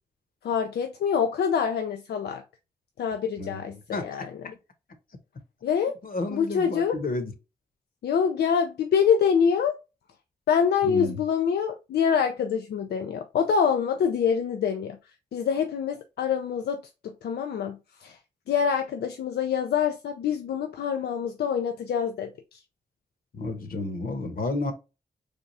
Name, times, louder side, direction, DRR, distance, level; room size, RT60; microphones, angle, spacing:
voice 1, 0.4-2.4 3.0-4.3 5.6-6.0 6.3-7.0 8.0-9.8 10.5-18.2 18.5-22.6, left 7 dB, 85° left, 0.4 m, -26 dB
voice 2, 3.9-4.2 6.0-7.3 10.8-11.2 23.3-24.7, left 2 dB, 60° left, 1.0 m, -31 dB
3.4 x 2.4 x 4.0 m
cardioid pair, 40°, 16 cm